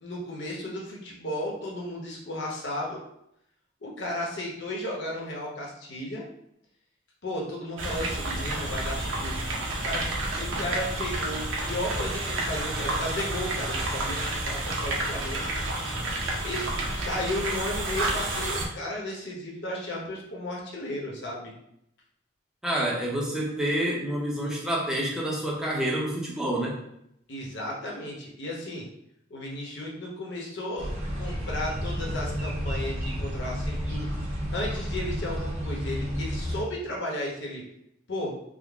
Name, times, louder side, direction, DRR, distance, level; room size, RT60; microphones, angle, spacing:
voice 1, 0.0-3.0 3.8-6.2 7.2-9.4 9.8-10.1 10.4-15.5 16.4-21.5 27.3-28.8 29.3-34.1 34.5-37.6 38.1-38.4, left 1 dB, 65° left, -2 dB, 0.9 m, -34 dB
sound 1, 7.8-18.7, right 2 dB, 85° right, 0.7 m, -30 dB
voice 2, 22.6-26.8, right 1 dB, 5° right, -4 dB, 0.6 m, -28 dB
sound 2, 30.8-36.6, equal, 35° right, 1.2 m, -31 dB
3.7 x 2.0 x 3.4 m, 0.76 s
head